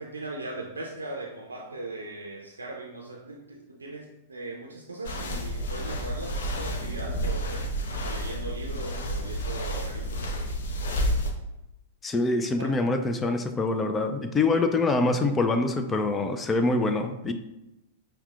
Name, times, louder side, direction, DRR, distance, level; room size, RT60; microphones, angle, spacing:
voice 1, 0.0-7.7 8.0-10.4 12.6-12.8, right 2 dB, 85° right, -1 dB, 0.4 m, -39 dB
sound 1, 5.0-11.3, equal, 70° left, 0.5 m, -30 dB
voice 2, 12.0-17.3, left 3 dB, 20° left, 7 dB, 0.3 m, -25 dB
5.5 x 2.2 x 2.4 m, 0.90 s
hypercardioid pair, 105°, 0 cm